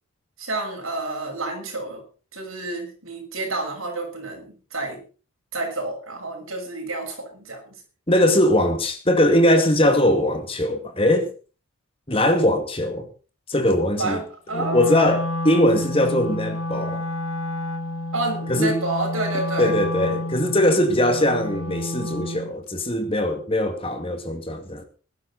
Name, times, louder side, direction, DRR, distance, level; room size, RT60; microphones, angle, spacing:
voice 1, 0.4-2.0 2.3-5.0 5.5-7.7 14.0-14.2 14.5-15.1 18.1-19.7, right 2 dB, 75° right, 6.8 m, -29 dB
voice 2, 8.1-11.3 12.1-13.1 13.5-14.2 14.5-17.0 18.5-18.7 19.6-24.9, left 1 dB, 25° left, 2.3 m, -21 dB
Wind instrument woodwind instrument, 14.5-22.5, left 1 dB, 80° left, 1.9 m, -29 dB
20.5 x 11.5 x 4.2 m
head